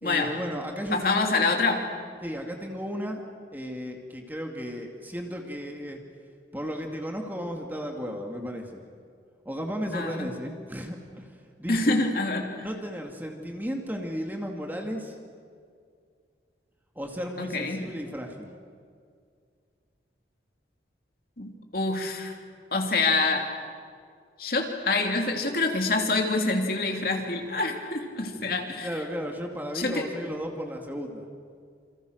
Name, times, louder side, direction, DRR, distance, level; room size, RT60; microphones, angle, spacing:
voice 1, 0.0-1.5 2.2-3.2 3.5-6.0 6.5-8.8 9.4-12.0 12.6-15.2 17.0-18.5 28.4-31.3, equal, 10° right, 2 dB, 2.4 m, -34 dB
voice 2, 0.9-1.8 9.9-10.3 11.7-12.7 17.4-17.8 21.4-22.3 22.7-23.4 24.4-28.9 29.7-30.0, left 3 dB, 55° left, 2 dB, 3.0 m, -26 dB
28.5 x 27.5 x 6.6 m, 2.2 s
head